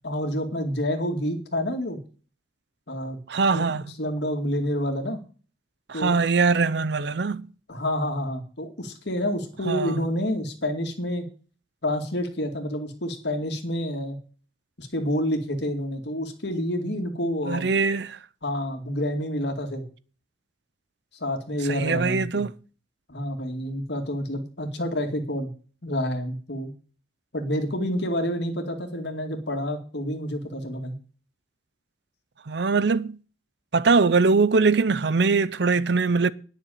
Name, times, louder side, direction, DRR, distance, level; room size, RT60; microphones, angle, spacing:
voice 1, 0.0-2.0 2.9-3.2 3.5-3.7 4.0-5.2 5.9-6.2 7.7-11.3 11.8-14.2 14.8-17.7 18.4-19.8 21.2-22.5 23.1-25.5 25.8-26.7 27.3-31.0, equal, 60° left, 2.3 m, -28 dB
voice 2, 3.3-3.8 5.9-7.5 9.7-10.0 17.5-18.2 21.7-22.5 32.5-33.2 33.7-36.3, right 4 dB, 60° right, 0.6 m, -22 dB
10.0 x 6.9 x 8.7 m
head